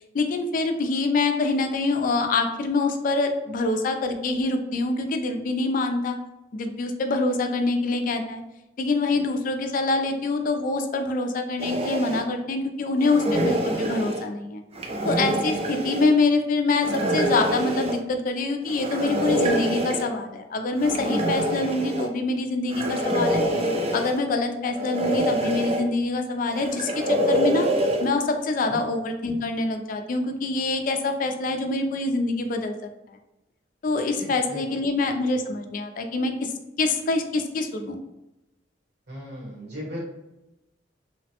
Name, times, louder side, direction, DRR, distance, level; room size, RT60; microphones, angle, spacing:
voice 1, 0.1-6.2 6.5-8.4 8.8-14.6 15.0-23.4 23.9-27.7 28.0-32.7 33.8-36.5 36.8-38.0, left 3 dB, 50° left, 6 dB, 0.3 m, -25 dB
sound 1, 11.6-12.2 13.0-14.2 14.7-16.1 16.8-18.0 18.7-20.1 20.8-22.1 22.7-24.2 24.7-25.8 26.5-28.1, right 1 dB, 35° right, 0.4 m, -25 dB
voice 2, 34.2-34.8 39.1-40.0, equal, 70° right, -4 dB, 1.3 m, -37 dB
3.1 x 2.1 x 2.8 m, 0.92 s
head